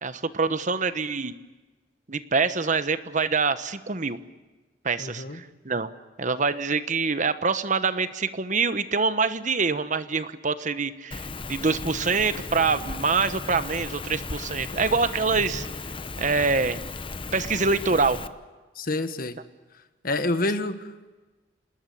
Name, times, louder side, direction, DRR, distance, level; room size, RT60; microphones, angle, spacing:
voice 1, 0.0-1.3 2.1-4.2 4.8-5.9 6.2-15.6 16.2-16.8 17.3-18.2, right 4 dB, 45° right, 12 dB, 1.2 m, -25 dB
voice 2, 5.0-5.4 18.7-19.4 20.0-21.2, left 2 dB, 55° left, 11 dB, 1.5 m, -28 dB
Rain, 11.1-18.3, left 3 dB, 30° left, 0.9 m, -36 dB
27.0 x 20.0 x 8.6 m, 1.2 s
head